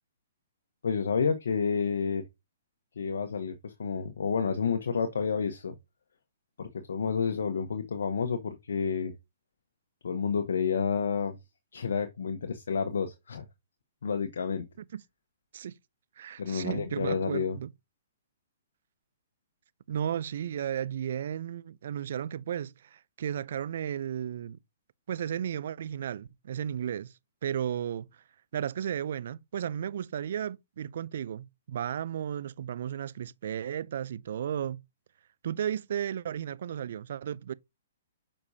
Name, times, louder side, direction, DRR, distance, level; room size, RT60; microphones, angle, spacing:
voice 1, 0.8-2.2 3.0-5.7 6.6-9.1 10.0-11.4 11.7-13.5 14.0-14.7 16.4-17.6, left 6 dB, 75° left, 0.9 m, -30 dB
voice 2, 16.2-17.7 19.9-24.6 25.1-27.1 27.4-28.2 28.5-34.8 35.4-37.5, right 9 dB, 65° right, 0.4 m, -34 dB
6.8 x 5.3 x 2.7 m
hypercardioid pair, 130°, 0 cm